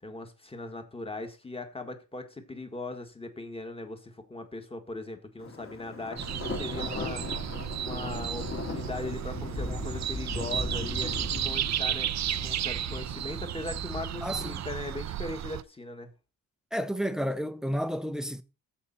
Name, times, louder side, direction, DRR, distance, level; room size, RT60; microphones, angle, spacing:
voice 1, 0.0-16.1, left 2 dB, 15° left, 1.8 m, -39 dB
Thunder, 5.4-15.2, left 3 dB, 35° left, 2.5 m, -38 dB
sound 1, 6.2-15.6, right 11 dB, 50° right, 0.5 m, -33 dB
voice 2, 14.2-14.6 16.7-18.4, equal, ahead, 0.7 m, -31 dB
15.0 x 5.7 x 4.2 m
cardioid pair, 135°, 36 cm